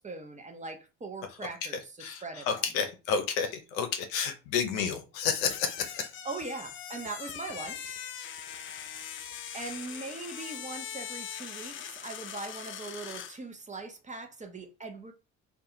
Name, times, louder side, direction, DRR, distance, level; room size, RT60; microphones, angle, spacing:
voice 1, 0.0-2.6 6.2-8.0 9.5-15.1, right 3 dB, 20° right, 0.5 m, -41 dB
voice 2, 2.0-6.1, left 6 dB, 75° left, 0.6 m, -30 dB
sound 1, 5.4-13.4, left 9 dB, 30° left, 0.4 m, -41 dB
2.3 x 2.2 x 2.8 m
hypercardioid pair, 50°, 42 cm